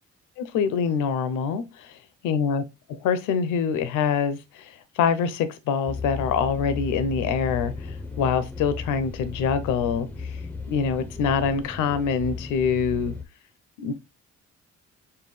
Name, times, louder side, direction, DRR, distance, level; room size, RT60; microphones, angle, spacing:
voice 1, 0.4-2.6 2.9-10.4 10.7-13.1 13.8-13.9, left 6 dB, 90° left, 0.5 m, -25 dB
sound 1, 5.9-13.2, left 4 dB, 5° left, 0.5 m, -35 dB
5.5 x 2.2 x 3.2 m
cardioid pair, 90°, 30 cm